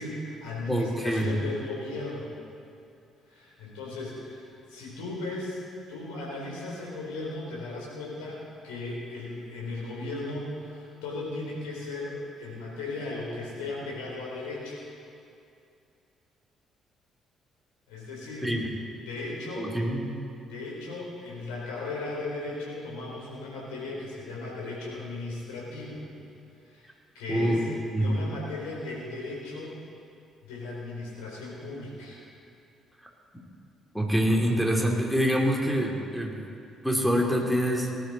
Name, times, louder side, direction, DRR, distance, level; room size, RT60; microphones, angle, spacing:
voice 1, 0.0-2.3 3.3-5.6 5.9-14.8 17.9-18.5 19.0-19.7 20.4-26.0 26.6-26.9 27.1-27.6 28.0-29.7 30.4-32.2, left 2 dB, 75° left, -4 dB, 4.1 m, -36 dB
voice 2, 0.7-1.3 18.4-18.6 19.6-20.1 27.3-27.6 27.9-28.1 33.9-36.3 36.8-37.9, equal, ahead, 0 dB, 2.9 m, -25 dB
18.0 x 11.5 x 4.4 m, 2.5 s
figure-of-eight pair, 45°, 0 cm